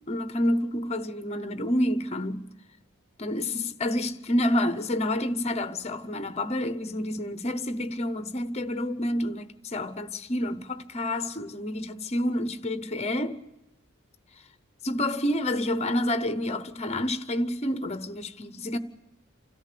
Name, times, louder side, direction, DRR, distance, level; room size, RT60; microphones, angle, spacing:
voice 1, 0.1-2.5 3.2-13.4 14.8-18.8, left 1 dB, 30° left, 0.8 m, -28 dB
28.0 x 14.0 x 6.8 m
head